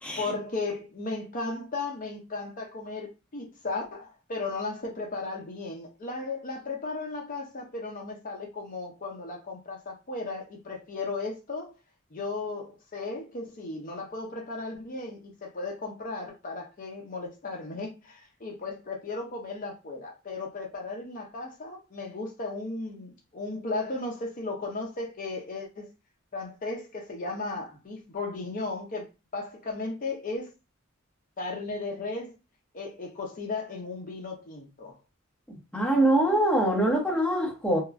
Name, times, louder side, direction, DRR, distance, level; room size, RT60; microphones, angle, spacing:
voice 1, 0.2-11.7 12.1-25.9 26.3-29.1 29.3-30.5 31.4-32.4 32.7-35.0, left 3 dB, 40° left, 0.5 m, -35 dB
voice 2, 35.7-37.8, right 1 dB, 5° left, 0.8 m, -23 dB
2.9 x 2.3 x 2.4 m
head